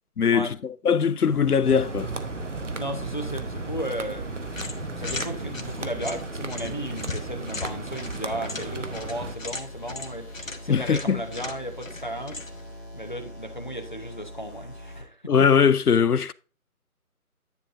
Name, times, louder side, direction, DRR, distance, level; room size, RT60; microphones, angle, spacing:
voice 1, 0.2-2.1 10.7-11.2 15.3-16.3, left 6 dB, 85° left, 0.6 m, -21 dB
sound 1, 1.3-15.0, left 1 dB, 15° left, 1.3 m, -43 dB
sound 2, 1.6-9.3, right 3 dB, 55° right, 1.0 m, -35 dB
voice 2, 2.8-4.3 5.0-10.3 10.6-12.4 12.9-15.5, equal, 30° left, 0.8 m, -34 dB
sound 3, 4.5-12.7, left 3 dB, 60° left, 1.2 m, -39 dB
10.5 x 7.0 x 2.5 m
figure-of-eight pair, 160°, 45 cm